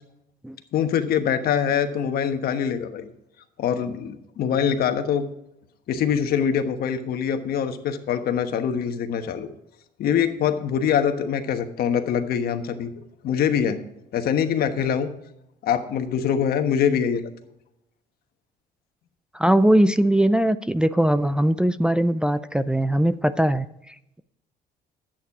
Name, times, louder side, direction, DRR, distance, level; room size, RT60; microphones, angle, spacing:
voice 1, 0.7-3.1 3.6-5.3 5.9-9.5 10.0-12.9 13.2-13.8 14.1-15.1 15.6-17.3, left 8 dB, 65° left, 8 dB, 1.2 m, -24 dB
voice 2, 19.3-24.2, right 1 dB, 5° right, 11 dB, 0.4 m, -21 dB
11.0 x 8.9 x 4.8 m, 0.80 s
cardioid pair, 110°, 17 cm